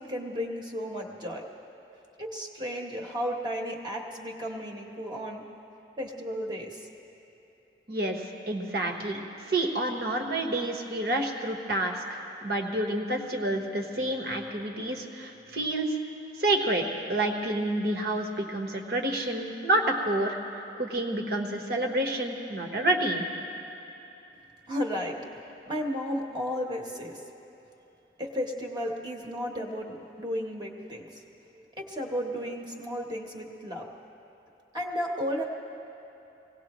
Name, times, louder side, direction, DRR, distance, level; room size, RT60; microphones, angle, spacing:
voice 1, 0.0-1.4 2.2-5.4 6.0-6.9 24.7-25.2 25.7-27.2 28.2-31.2 31.8-33.9 34.7-35.4, equal, 25° right, -1 dB, 1.2 m, -33 dB
voice 2, 7.9-9.2 9.5-16.0 16.4-16.8 17.1-20.4 20.8-23.2, right 1 dB, 55° right, 2 dB, 1.4 m, -29 dB
24.0 x 18.0 x 3.1 m, 2.9 s
head